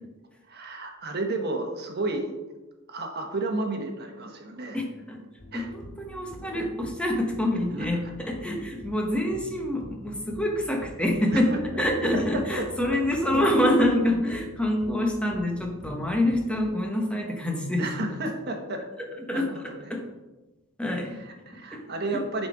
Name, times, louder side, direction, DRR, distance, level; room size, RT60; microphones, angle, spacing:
voice 1, 0.5-2.3 2.9-4.8 5.5-5.7 7.7-8.1 11.3-11.8 12.1-12.7 17.7-18.9 19.3-19.9 21.1-22.5, right 2 dB, 50° right, 3 dB, 1.2 m, -32 dB
voice 2, 4.7-5.2 5.5-11.5 11.8-17.8 19.3-19.5 19.9-20.0 20.8-21.2 21.7-21.8 22.1-22.2, left 1 dB, 5° left, 1 dB, 1.1 m, -26 dB
sound 1, 5.4-16.7, left 1 dB, 60° left, 2.1 m, -45 dB
10.5 x 4.2 x 4.9 m, 1.1 s
head